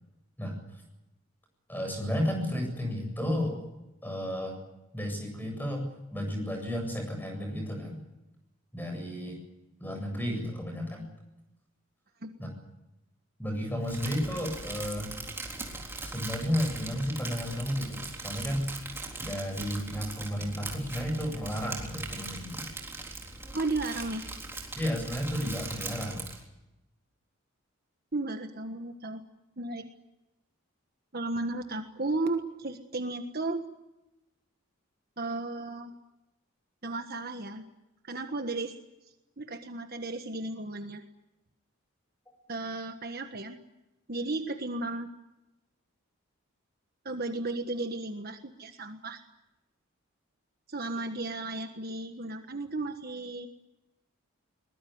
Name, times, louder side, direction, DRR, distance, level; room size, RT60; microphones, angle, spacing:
voice 1, 1.7-3.6 4.0-4.6 4.9-5.8 6.1-8.0 8.7-9.4 9.8-11.1 12.4-12.5 13.4-15.2 16.0-18.7 19.2-22.7 24.8-26.3, equal, 10° left, 3 dB, 8.0 m, -32 dB
Crumpling crinkling, 13.8-26.4, right 3 dB, 10° right, 3.7 m, -40 dB
voice 2, 23.5-24.3 28.1-29.2 29.6-29.8 31.1-33.6 35.2-36.0 36.8-37.6 38.0-38.7 39.4-41.0 42.5-43.6 44.1-45.1 47.0-49.2 50.7-53.5, right 2 dB, 45° right, 6 dB, 1.5 m, -34 dB
22.5 x 20.5 x 9.5 m, 0.95 s
head